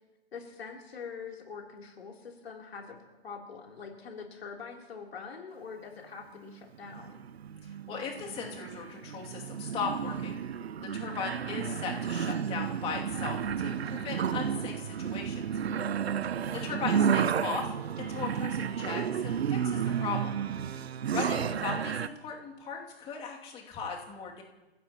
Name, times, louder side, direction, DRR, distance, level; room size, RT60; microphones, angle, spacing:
voice 1, 0.3-3.0 3.2-7.2 16.4-16.9, left 5 dB, 70° left, 0 dB, 3.4 m, -44 dB
sound 1, 6.5-22.1, right 8 dB, 75° right, 0.8 m, -32 dB
voice 2, 7.9-10.4 10.8-15.4 16.5-20.3 21.1-24.4, left 6 dB, 15° left, -1 dB, 2.5 m, -38 dB
28.5 x 15.5 x 3.0 m, 1.1 s
hypercardioid pair, 140°, 32 cm